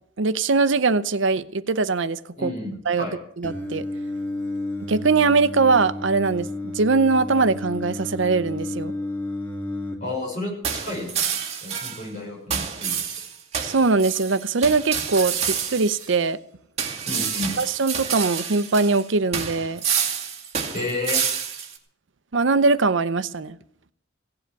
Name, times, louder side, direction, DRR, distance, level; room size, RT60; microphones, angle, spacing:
voice 1, 0.2-2.5 2.9-3.1 3.4-3.8 4.9-6.5 6.7-8.9 13.6-16.4 17.6-19.8 22.3-23.6, right 4 dB, 70° right, 15 dB, 0.7 m, -21 dB
voice 2, 2.4-3.2 10.0-11.3 11.6-13.0 17.1-17.6 20.7-21.2, left 2 dB, 35° left, -1 dB, 6.0 m, -31 dB
Singing, 3.4-10.0, left 2 dB, 10° left, 2.3 m, -31 dB
sound 1, 10.6-12.1 12.5-16.1 16.8-19.0 19.3-21.8, right 7 dB, 30° right, 2.4 m, -28 dB
16.5 x 7.8 x 9.3 m, 0.67 s
head